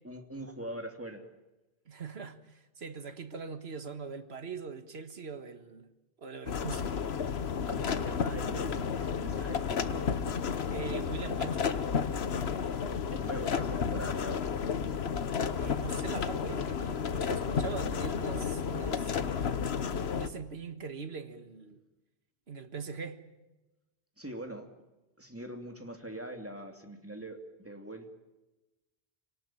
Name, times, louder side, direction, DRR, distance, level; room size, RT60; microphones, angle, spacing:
voice 1, 0.0-1.3 7.7-10.2 12.3-14.5 24.2-24.7 25.2-28.1, right 1 dB, 15° right, 2.7 m, -43 dB
voice 2, 1.9-5.9 6.2-7.0 10.7-11.7 15.6-19.1 20.1-21.8 22.5-23.2, right 5 dB, 85° right, 1.8 m, -42 dB
sound 1, 6.5-20.3, left 6 dB, 85° left, 1.3 m, -32 dB
27.0 x 18.5 x 9.0 m
omnidirectional pair, 1.0 m